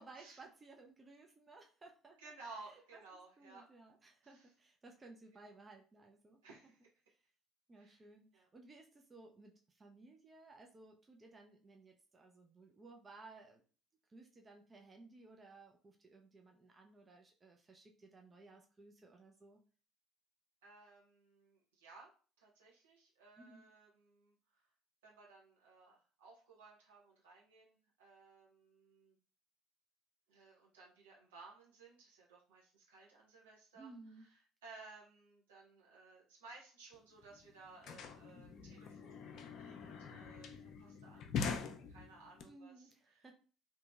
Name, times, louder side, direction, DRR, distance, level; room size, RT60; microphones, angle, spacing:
voice 1, 0.0-3.0 3.4-6.4 7.7-13.6 14.1-19.6 23.4-23.7 33.8-34.2 42.4-43.3, right 3 dB, 30° right, 2 dB, 0.5 m, -58 dB
voice 2, 2.2-3.6 4.2-4.5 6.4-6.8 7.7-8.0 8.3-8.5 20.6-22.1 22.4-24.6 25.0-29.2 30.3-33.9 34.2-34.3 34.6-43.2, right 3 dB, 80° right, -3 dB, 1.0 m, -58 dB
sound 1, 36.9-37.0 37.2-42.4, left 5 dB, 60° left, 0.4 m, -44 dB
2.7 x 2.7 x 2.3 m, 0.39 s
hypercardioid pair, 60°, 0 cm